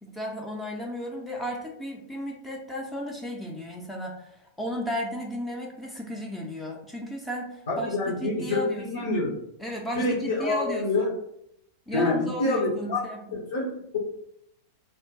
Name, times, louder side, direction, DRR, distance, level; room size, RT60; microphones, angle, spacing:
voice 1, 0.0-9.1 9.6-11.1 11.9-13.4, equal, 5° left, -2 dB, 0.4 m, -34 dB
voice 2, 7.7-9.3 9.9-11.1 11.9-13.0 13.3-14.0, left 2 dB, 65° left, -4 dB, 0.7 m, -27 dB
2.6 x 2.1 x 3.5 m, 0.75 s
figure-of-eight pair, 90°, 0 cm